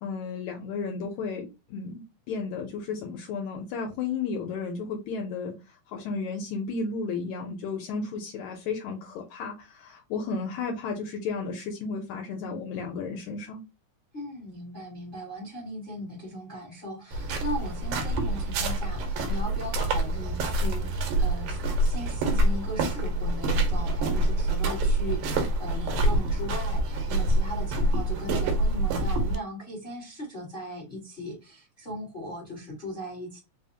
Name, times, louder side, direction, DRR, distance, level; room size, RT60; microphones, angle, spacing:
voice 1, 0.0-5.6 5.9-13.6, left 4 dB, 80° left, 2 dB, 2.0 m, -33 dB
voice 2, 14.1-33.4, left 1 dB, 40° left, -4 dB, 0.7 m, -38 dB
sound 1, 17.1-29.4, right 1 dB, 90° right, 2.4 m, -26 dB
5.0 x 2.1 x 2.6 m, 0.26 s
omnidirectional pair, 3.5 m